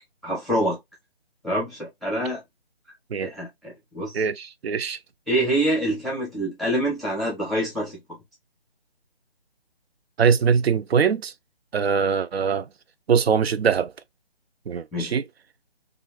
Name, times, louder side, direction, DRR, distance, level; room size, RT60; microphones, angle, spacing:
voice 1, 0.2-0.8 1.4-2.4 3.2-4.2 5.3-8.0 14.9-15.1, right 1 dB, ahead, 0.3 m, -26 dB
voice 2, 4.1-5.0 10.2-11.3 11.7-12.7 13.1-13.9 14.7-15.3, right 6 dB, 80° right, 0.5 m, -22 dB
3.0 x 2.4 x 2.4 m
figure-of-eight pair, 160°, 30 cm